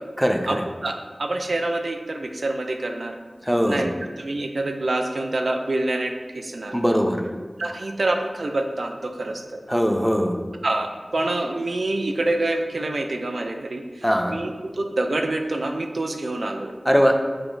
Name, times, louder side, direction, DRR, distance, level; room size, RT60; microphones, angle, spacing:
voice 1, 0.2-0.7 3.4-3.9 6.7-7.3 9.7-10.4 14.0-14.4 16.9-17.3, equal, ahead, 5 dB, 0.4 m, -21 dB
voice 2, 0.8-3.2 3.7-6.8 7.6-9.6 10.6-16.7, right 2 dB, 80° right, 4 dB, 0.3 m, -26 dB
6.8 x 2.9 x 2.5 m, 1.5 s
wide cardioid pair, 45°, 0 cm